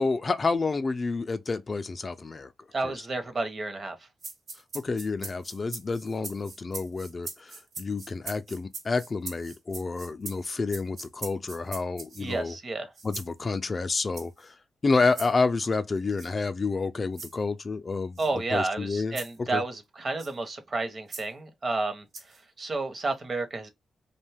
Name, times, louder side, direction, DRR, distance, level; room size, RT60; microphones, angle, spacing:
voice 1, 0.0-2.5 2.8-2.9 4.7-12.5 13.0-14.5 14.8-18.2 18.5-19.2 19.5-19.6, left 4 dB, 40° left, 0.3 m, -29 dB
voice 2, 2.7-4.1 12.2-12.9 18.2-23.7, right 3 dB, 45° right, 0.7 m, -31 dB
sound 1, 4.2-12.4 12.9-13.3 14.1-14.4 15.1-15.3 16.2-16.3 17.1-17.4 18.2-18.3 19.1-19.4 20.2-20.3 21.1-21.3 22.1-22.4, right 3 dB, 75° right, 1.1 m, -41 dB
2.5 x 2.2 x 3.3 m
cardioid pair, 65°, 0 cm